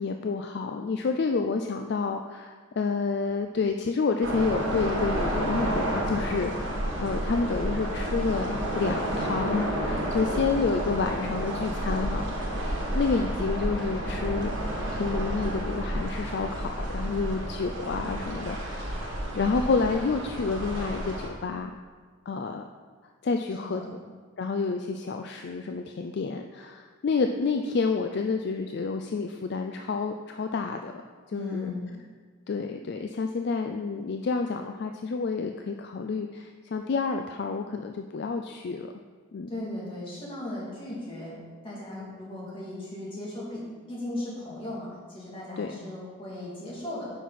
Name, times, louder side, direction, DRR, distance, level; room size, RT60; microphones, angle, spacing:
voice 1, 0.0-12.5 12.9-14.5 14.9-19.0 19.3-21.7 22.3-22.6 23.2-23.8 24.4-30.9 31.3-31.7 32.5-38.9 39.3-39.5 45.6-45.7, left 4 dB, 50° left, 5 dB, 0.3 m, -29 dB
sound 1, 4.2-21.3, right 1 dB, 65° right, 1.5 m, -30 dB
voice 2, 11.1-11.5 17.0-17.2 23.6-23.9 31.3-32.0 39.5-41.4 41.6-47.1, left 1 dB, 25° left, -7 dB, 2.6 m, -37 dB
9.3 x 5.9 x 4.2 m, 1.5 s
head